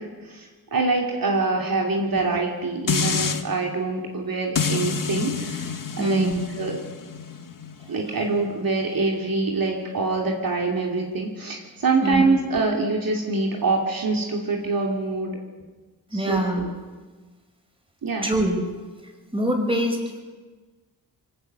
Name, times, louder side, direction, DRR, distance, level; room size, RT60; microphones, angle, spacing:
voice 1, 0.0-5.7 6.0-6.3 6.6-6.8 7.9-15.4 16.1-16.7 18.0-18.3, right 3 dB, 60° right, 1 dB, 2.7 m, -25 dB
sound 1, 2.9-3.4 4.6-9.7 10.2-10.3, left 6 dB, 55° left, 1.4 m, -29 dB
voice 2, 6.0-6.4 12.0-12.2 16.1-16.6 18.2-18.5 19.3-20.2, right 1 dB, 15° right, 2 dB, 5.3 m, -24 dB
24.5 x 17.0 x 6.7 m, 1.3 s
wide cardioid pair, 80°, 38 cm